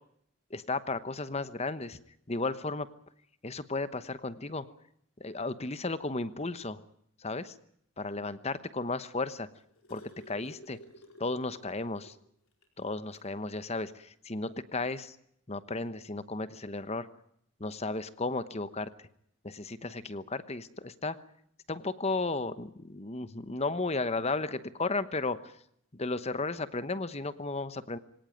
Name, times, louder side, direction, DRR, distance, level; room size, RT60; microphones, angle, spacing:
voice 1, 0.5-2.0 2.3-2.9 3.4-4.7 5.2-6.8 7.2-7.5 8.0-9.5 9.9-10.0 10.3-10.8 11.2-12.1 12.8-15.2 15.5-17.1 17.6-18.9 19.4-21.2 21.7-25.5 25.9-28.0, left 3 dB, 30° left, 13 dB, 1.1 m, -34 dB
sound 1, 9.3-12.2 12.6-12.7 13.1-13.3 14.4-14.5, left 1 dB, 65° left, 4.9 m, -52 dB
23.5 x 18.0 x 9.1 m, 0.71 s
head